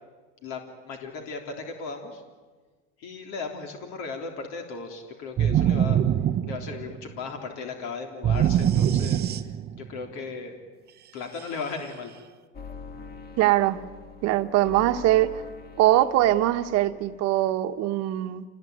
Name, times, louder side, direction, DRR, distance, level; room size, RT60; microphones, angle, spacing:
voice 1, 0.4-2.2 3.0-6.0 6.5-9.5 9.8-10.6 11.1-12.1, left 4 dB, 60° left, 3.6 m, -36 dB
sound 1, 5.4-7.1 8.2-9.9, right 10 dB, 30° right, 0.9 m, -23 dB
sound 2, 12.5-17.5, left 5 dB, 30° left, 2.3 m, -44 dB
voice 2, 13.4-13.8 14.2-15.4 15.8-18.4, right 14 dB, 55° right, 1.3 m, -22 dB
27.5 x 19.5 x 9.4 m
supercardioid pair, 125°, 32 cm